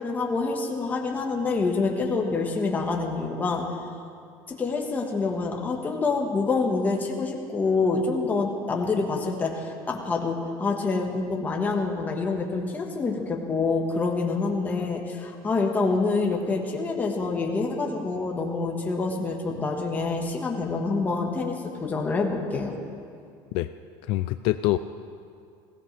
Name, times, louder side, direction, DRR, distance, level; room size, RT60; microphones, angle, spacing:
voice 1, 0.0-3.8 4.5-22.7, left 3 dB, 15° left, 1 dB, 1.5 m, -27 dB
voice 2, 24.0-24.8, left 17 dB, 60° left, 10 dB, 0.4 m, -25 dB
21.0 x 17.0 x 3.4 m, 2.4 s
cardioid pair, 165°, 10 cm